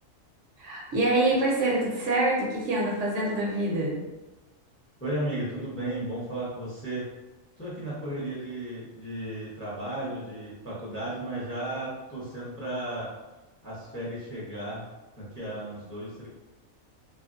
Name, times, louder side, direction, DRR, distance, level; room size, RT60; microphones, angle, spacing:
voice 1, 0.6-4.0, right 2 dB, 70° right, -3 dB, 1.0 m, -26 dB
voice 2, 5.0-7.1 7.6-13.1 13.6-14.8 15.2-16.3, right 1 dB, 15° left, -7 dB, 0.6 m, -34 dB
2.9 x 2.4 x 2.6 m, 1.1 s
omnidirectional pair, 1.4 m